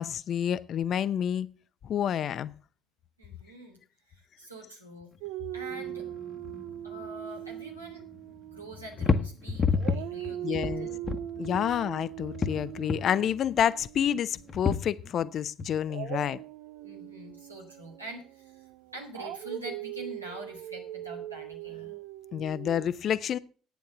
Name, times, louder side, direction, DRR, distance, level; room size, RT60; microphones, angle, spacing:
voice 1, 0.0-1.5 1.8-2.5 10.4-10.9 11.4-16.4 22.3-23.4, left 9 dB, 40° left, 0.6 m, -29 dB
voice 2, 3.2-3.8 4.1-5.1 5.5-6.1 6.8-11.0 16.8-22.0, right 1 dB, 85° right, 2.9 m, -45 dB
Dog, 5.2-9.4 9.8-14.8 15.9-22.8, right 14 dB, 55° right, 0.5 m, -40 dB
sound 1, 5.7-7.1 7.4-8.2 8.6-11.8 12.1-13.2 14.1-15.2 15.6-15.7, left 5 dB, 25° left, 1.1 m, -31 dB
11.5 x 9.3 x 5.9 m
figure-of-eight pair, 60°, 0 cm